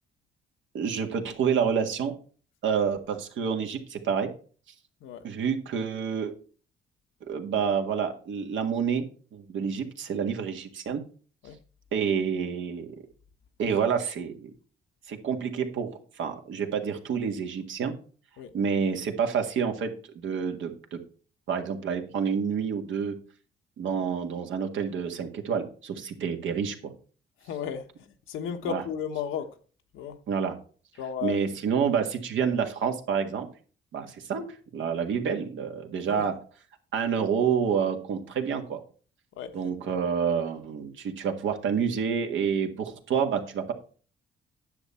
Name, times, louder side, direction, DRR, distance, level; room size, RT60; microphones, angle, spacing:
voice 1, 0.7-2.1 2.6-4.3 5.2-6.3 7.2-9.1 9.3-11.0 11.9-13.0 13.6-14.5 15.1-17.9 18.5-21.0 21.5-23.1 23.8-26.9 28.6-28.8 30.3-30.6 31.2-33.5 33.9-36.4 36.9-38.8 39.5-43.7, right 7 dB, 75° right, 1.8 m, -28 dB
voice 2, 27.4-29.5 29.9-30.2 31.0-31.4 36.1-36.3 39.4-39.5, left 7 dB, 85° left, 1.2 m, -34 dB
9.9 x 7.1 x 4.3 m
cardioid pair, 90°, 20 cm